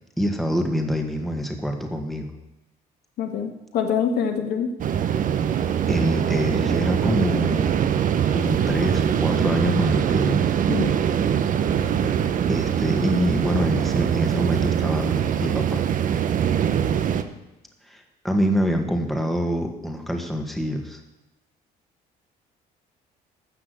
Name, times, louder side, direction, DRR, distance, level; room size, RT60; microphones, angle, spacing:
voice 1, 0.2-2.3 5.9-7.7 8.3-10.4 12.5-15.8 17.9-21.0, equal, ahead, 3 dB, 1.8 m, -25 dB
voice 2, 3.2-4.7 10.7-11.0, left 7 dB, 75° left, 5 dB, 1.7 m, -25 dB
sound 1, 4.8-17.2, right 9 dB, 50° right, 0.9 m, -22 dB
14.0 x 6.0 x 8.3 m, 1.0 s
cardioid pair, 110°, 17 cm